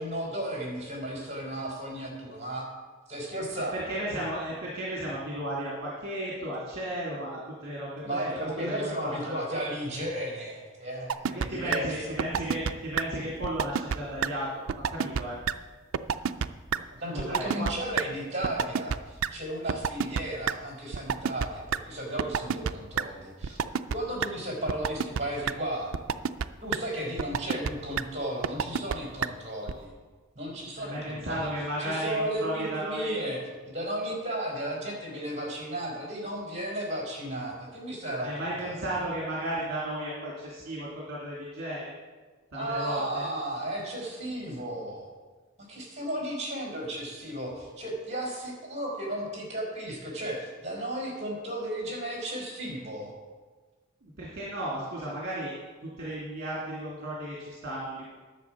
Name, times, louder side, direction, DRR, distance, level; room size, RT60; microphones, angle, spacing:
voice 1, 0.0-2.7 3.1-4.2 8.0-12.2 17.0-23.6 23.9-26.0 26.6-29.9 30.4-31.5 31.8-38.8 42.5-45.1 45.7-53.1, right 1 dB, 35° right, -2 dB, 4.1 m, -34 dB
voice 2, 3.7-9.4 11.3-15.4 17.1-17.7 30.8-33.1 38.2-41.9 42.5-43.3 54.0-55.5 55.8-58.0, right 1 dB, 50° right, -6 dB, 2.5 m, -34 dB
sound 1, 11.1-11.5 11.7-11.8 12.2-12.7 13.0-13.1 13.4-14.0 14.2-14.3 14.7-15.2 15.5-15.6 15.9-16.5 16.7-16.8 17.2-17.7 18.0-18.1 18.4-19.0 19.2-19.3 19.7-20.5 20.9-21.8 22.2-22.7 23.0-23.1 23.4-23.9 24.2-24.3 24.7-25.2 25.5-25.6 25.9-26.4 26.7-26.8 27.2-27.7 28.0-28.1 28.4-28.9 29.2-29.3 29.7-29.8, right 7 dB, 75° right, 0.4 m, -27 dB
11.0 x 7.5 x 6.1 m, 1.4 s
head